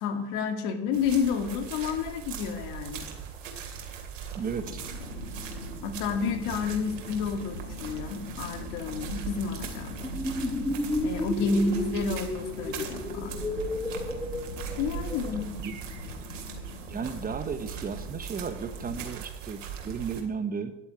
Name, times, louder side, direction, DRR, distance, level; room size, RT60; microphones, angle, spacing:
voice 1, 0.0-3.1 5.8-10.0 11.0-13.4 14.8-15.6, left 5 dB, 55° left, 7 dB, 2.1 m, -30 dB
sound 1, 0.9-20.2, right 7 dB, 85° right, 2.8 m, -40 dB
voice 2, 4.3-4.8 11.5-11.6 15.6-15.8 16.9-20.8, right 6 dB, 25° right, 10 dB, 1.1 m, -34 dB
sound 2, 4.6-19.0, left 4 dB, 75° left, 3.8 m, -43 dB
sound 3, 10.0-15.4, left 1 dB, 5° left, 1.3 m, -32 dB
11.0 x 8.3 x 8.8 m, 0.95 s
hypercardioid pair, 100°, 37 cm